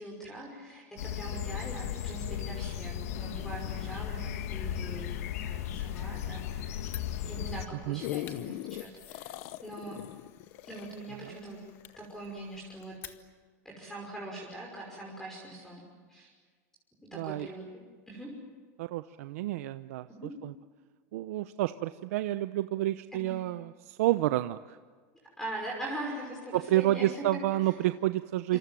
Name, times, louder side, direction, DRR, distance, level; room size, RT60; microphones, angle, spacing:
voice 1, 0.0-5.2 5.4-6.8 7.2-9.3 9.6-10.0 10.7-11.6 12.0-12.9 13.6-15.8 16.1-16.3 17.0-17.8 18.1-18.3 20.2-20.3 23.1-23.4 25.2-27.4 28.5-28.6, right 1 dB, 5° left, -1 dB, 5.7 m, -42 dB
sound 1, 1.0-7.7, left 10 dB, 85° left, 1.7 m, -36 dB
Fire, 6.8-13.6, left 10 dB, 30° left, 1.7 m, -54 dB
sound 2, 7.6-12.3 12.8-12.9, left 14 dB, 55° left, 1.2 m, -40 dB
voice 2, 17.1-17.5 18.8-20.1 20.4-20.5 21.1-24.8 26.5-28.6, right 15 dB, 75° right, 11 dB, 0.9 m, -29 dB
28.0 x 27.5 x 7.7 m, 1.6 s
supercardioid pair, 155°, 8 cm